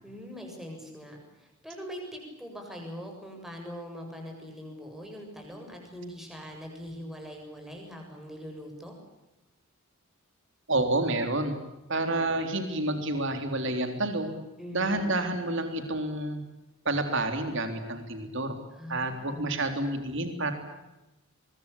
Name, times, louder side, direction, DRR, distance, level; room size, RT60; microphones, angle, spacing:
voice 1, 0.0-8.9 14.6-15.2 18.7-19.5, equal, ahead, 2 dB, 7.4 m, -42 dB
voice 2, 10.7-11.6 11.9-14.4 14.7-16.4 16.9-18.6 18.9-20.5, right 2 dB, 60° right, 7 dB, 3.6 m, -29 dB
24.0 x 23.0 x 8.6 m, 0.98 s
head